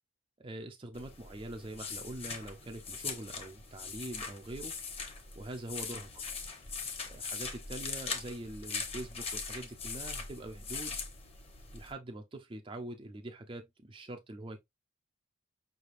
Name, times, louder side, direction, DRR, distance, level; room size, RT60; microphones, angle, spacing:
voice 1, 0.4-4.7 5.4-6.1 7.1-11.0 11.7-14.6, right 1 dB, 25° right, 0.5 m, -44 dB
sound 1, 0.9-11.9, left 5 dB, 30° left, 0.9 m, -41 dB
5.4 x 3.3 x 2.5 m
head